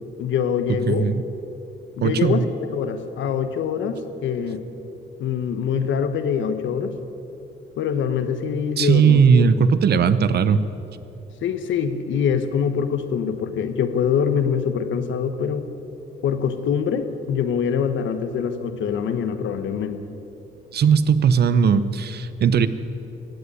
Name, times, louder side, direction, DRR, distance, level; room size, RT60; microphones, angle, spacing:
voice 1, 0.2-1.1 2.0-2.4 2.7-4.7 5.2-6.9 7.8-9.4 11.4-15.7 16.2-20.0, left 7 dB, 75° left, 9 dB, 1.2 m, -24 dB
voice 2, 0.9-1.2 2.0-2.4 8.8-10.6 20.7-22.7, right 6 dB, 55° right, 13 dB, 0.8 m, -18 dB
16.0 x 8.2 x 9.8 m, 2.9 s
cardioid pair, 90°, 20 cm